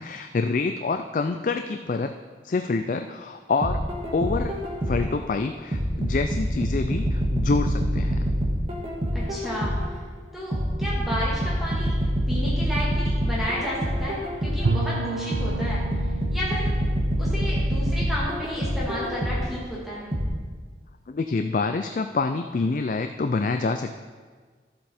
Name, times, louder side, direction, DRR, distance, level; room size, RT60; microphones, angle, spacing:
voice 1, 0.0-2.2 2.4-3.8 4.1-4.5 4.9-8.3 21.1-24.0, left 4 dB, 45° left, 7 dB, 0.4 m, -26 dB
sound 1, 3.6-5.2 5.7-10.0 10.5-14.8 15.3-19.6 20.1-20.3, equal, 30° right, 1.7 m, -26 dB
voice 2, 9.1-9.8 10.3-12.0 12.3-15.8 16.3-16.7 17.2-20.2, equal, ahead, -7 dB, 1.9 m, -32 dB
Bowed string instrument, 14.6-19.5, right 3 dB, 85° right, 0.5 m, -32 dB
12.5 x 7.7 x 4.3 m, 1.5 s
head